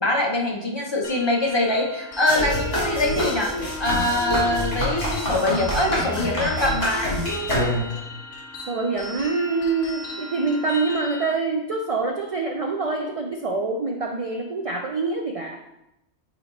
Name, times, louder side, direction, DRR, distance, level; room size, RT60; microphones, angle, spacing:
voice 1, 0.0-3.5 3.8-7.1, left 1 dB, 25° left, -1 dB, 0.8 m, -23 dB
sound 1, 1.0-11.3, left 2 dB, 80° left, 1.1 m, -37 dB
sound 2, 2.3-8.1, equal, 55° left, 2.6 m, -26 dB
voice 2, 8.7-15.6, right 3 dB, 65° right, 2 dB, 0.3 m, -25 dB
8.8 x 2.9 x 4.0 m, 0.88 s
omnidirectional pair, 1.3 m